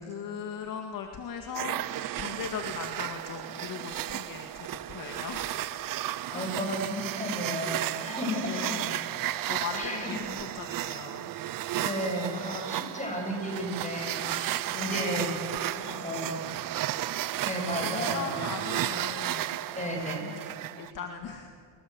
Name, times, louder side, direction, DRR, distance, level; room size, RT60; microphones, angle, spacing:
voice 1, 0.0-1.9 2.2-5.6 6.3-6.6 8.4-9.1 9.5-11.3 14.7-15.2 15.6-16.1 17.3-19.6 20.8-21.5, left 6 dB, 40° left, 4 dB, 2.1 m, -39 dB
sound 1, 1.5-20.9, right 13 dB, 45° right, 0.8 m, -34 dB
voice 2, 6.1-8.9 9.7-10.1 11.8-15.4 16.0-16.3 17.4-18.3 19.7-20.3, equal, 15° left, 1 dB, 8.0 m, -33 dB
30.0 x 22.0 x 8.0 m, 2.3 s
cardioid pair, 125°, 49 cm